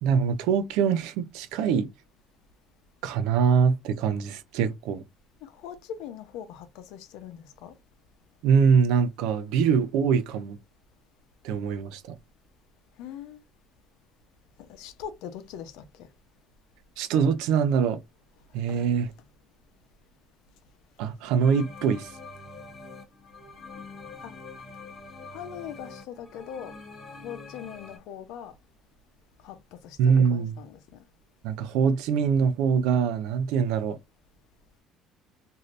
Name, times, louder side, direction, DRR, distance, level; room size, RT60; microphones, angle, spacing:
voice 1, 0.0-1.9 3.0-5.0 8.4-10.6 11.4-12.2 17.0-18.0 18.5-19.1 21.0-22.2 30.0-30.5 31.4-34.0, right 6 dB, 90° right, 0.5 m, -23 dB
voice 2, 5.4-7.7 13.0-13.4 14.7-15.8 18.7-18.9 24.2-24.3 25.3-26.7 27.2-28.5 29.4-29.6 29.8-30.0 30.2-30.8, left 9 dB, 80° left, 0.7 m, -41 dB
sound 1, 21.4-28.0, left 3 dB, 25° left, 0.9 m, -45 dB
3.2 x 2.6 x 2.5 m
cardioid pair, 150°, 0 cm